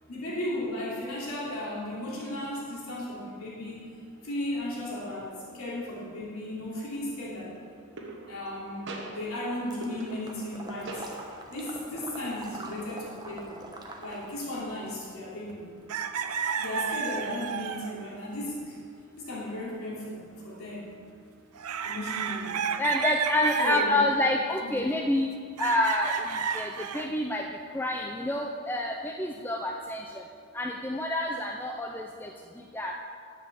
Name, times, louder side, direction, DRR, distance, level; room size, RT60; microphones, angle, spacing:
voice 1, 0.1-4.0 4.2-7.5 8.3-11.0 11.5-13.6 14.0-15.7 16.6-18.8 19.2-20.9 21.8-22.6 23.6-24.0 24.6-24.8, left 1 dB, 75° left, -6 dB, 3.1 m, -35 dB
sound 1, 6.7-7.1 8.0-8.6 8.9-10.6 10.9-11.6, right 2 dB, 55° right, 1.3 m, -42 dB
Water / Liquid, 9.7-14.5, right 1 dB, 20° right, 1.0 m, -44 dB
sound 2, 15.5-15.6 15.9-18.1 21.6-23.9 25.6-27.1, right 7 dB, 85° right, 0.6 m, -32 dB
voice 2, 22.8-25.3 25.6-26.1 26.5-27.4 27.7-30.0 30.5-32.3 32.7-32.9, left 1 dB, 10° left, 1 dB, 0.4 m, -28 dB
10.5 x 7.8 x 6.8 m, 2.2 s
head